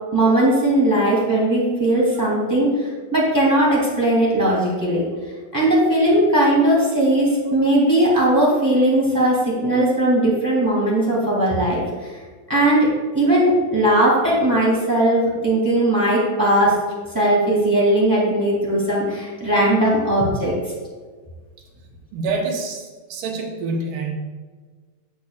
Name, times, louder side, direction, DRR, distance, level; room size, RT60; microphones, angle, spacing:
voice 1, 0.1-5.0 5.5-12.1 12.5-12.9 13.1-16.7 17.1-20.5, right 1 dB, 10° right, -5 dB, 1.5 m, -18 dB
voice 2, 22.1-24.1, right 3 dB, 75° right, 1 dB, 2.6 m, -26 dB
10.5 x 7.2 x 2.4 m, 1.4 s
omnidirectional pair, 3.9 m